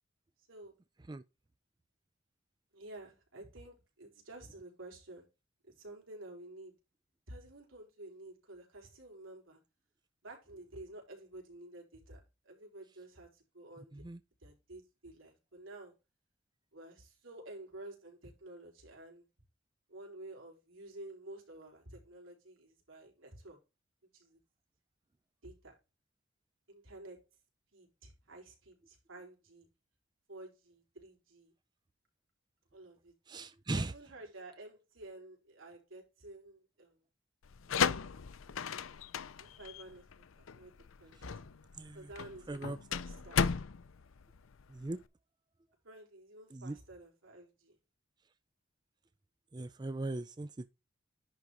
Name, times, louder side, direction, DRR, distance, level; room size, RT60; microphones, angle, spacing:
voice 1, 2.7-5.3 5.8-6.7 7.3-9.6 10.2-12.2 12.4-14.0 14.4-15.9 16.7-19.2 19.9-23.6 24.1-24.4 25.4-25.7 26.7-27.2 27.7-29.7 30.3-31.5 32.7-33.1 33.7-37.0 37.7-38.0 39.4-40.0 40.4-41.3 41.9-43.4 45.8-47.8, right 2 dB, 85° right, 4.4 m, -51 dB
voice 2, 33.3-33.9 41.1-41.4 41.7-42.1 42.5-42.8 44.7-45.0 46.5-46.8 49.5-50.7, right 2 dB, 20° right, 0.4 m, -39 dB
sound 1, 37.4-45.0, left 6 dB, 85° left, 0.6 m, -35 dB
10.5 x 3.9 x 4.8 m
head